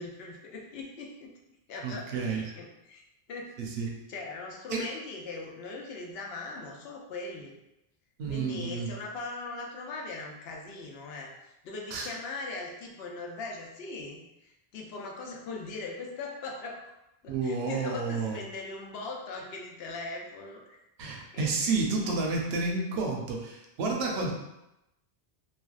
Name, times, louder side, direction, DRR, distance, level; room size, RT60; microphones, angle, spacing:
voice 1, 0.0-1.3 1.7-3.0 3.3-3.5 4.1-7.5 8.3-16.9 17.2-20.8 21.1-21.8 22.0-22.2, left 3 dB, 75° left, 0 dB, 0.8 m, -40 dB
voice 2, 1.8-2.4 3.6-3.9 4.7-4.9 8.2-8.9 11.9-12.1 17.3-18.4 21.0-24.3, right 4 dB, 75° right, 0 dB, 0.8 m, -30 dB
3.2 x 2.2 x 2.3 m, 0.90 s
omnidirectional pair, 1.1 m